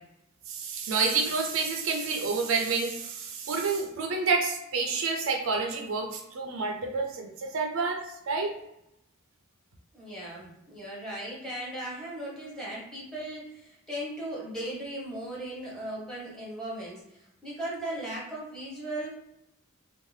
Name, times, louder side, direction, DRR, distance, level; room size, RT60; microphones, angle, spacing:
voice 1, 0.5-8.6, right 4 dB, 65° right, 2 dB, 0.4 m, -29 dB
voice 2, 9.9-19.1, right 1 dB, 5° left, -6 dB, 0.9 m, -37 dB
2.6 x 2.0 x 3.2 m, 0.84 s
head